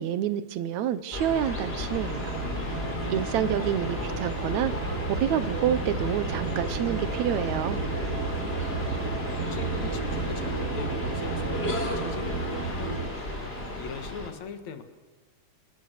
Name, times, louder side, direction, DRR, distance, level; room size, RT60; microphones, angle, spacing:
voice 1, 0.0-2.3 3.1-7.8, right 10 dB, 80° right, 14 dB, 2.3 m, -28 dB
sound 1, 1.1-14.3, left 1 dB, 20° left, 3.4 m, -34 dB
sound 2, 2.2-13.1, right 7 dB, 60° right, 2.0 m, -35 dB
sound 3, 2.3-12.0, right 1 dB, 30° right, 2.8 m, -37 dB
voice 2, 3.1-3.7 8.6-13.2 13.8-14.8, left 6 dB, 70° left, 8 dB, 2.9 m, -41 dB
27.0 x 19.0 x 6.8 m, 1.2 s
omnidirectional pair, 3.3 m